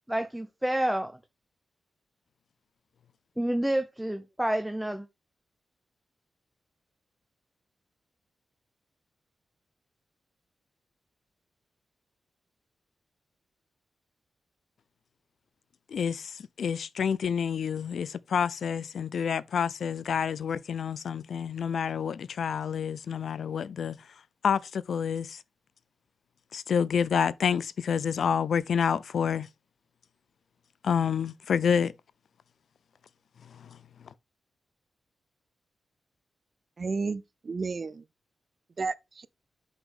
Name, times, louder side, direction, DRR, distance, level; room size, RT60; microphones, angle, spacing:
voice 1, 0.1-1.1 3.4-5.1, right 1 dB, 5° right, 0.6 m, -28 dB
voice 2, 15.9-24.0 24.4-25.4 26.5-29.5 30.8-31.9 33.5-33.8, left 7 dB, 75° left, 0.4 m, -28 dB
voice 3, 36.8-38.0 38.8-39.3, right 4 dB, 45° right, 0.4 m, -32 dB
6.0 x 5.3 x 3.7 m
cardioid pair, 90°, 0 cm